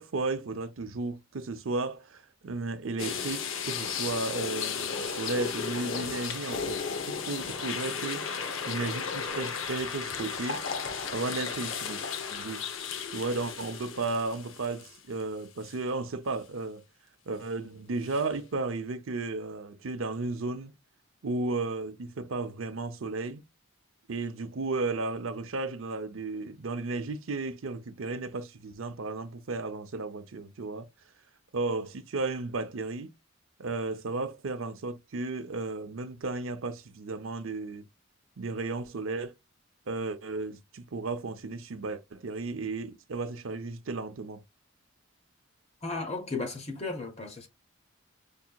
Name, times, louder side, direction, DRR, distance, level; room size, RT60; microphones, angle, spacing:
voice 1, 0.0-10.6 11.1-12.0 12.3-12.6 13.1-16.8 17.3-20.7 21.2-23.4 24.1-30.9 31.5-33.1 33.6-37.8 38.4-39.3 39.9-44.4, right 3 dB, 80° right, 0.6 m, -34 dB
sound 1, 3.0-15.2 15.6-15.7 18.1-18.2, left 6 dB, 75° left, 0.7 m, -34 dB
voice 2, 45.8-47.5, left 3 dB, 30° left, 0.9 m, -35 dB
5.3 x 2.8 x 2.2 m
head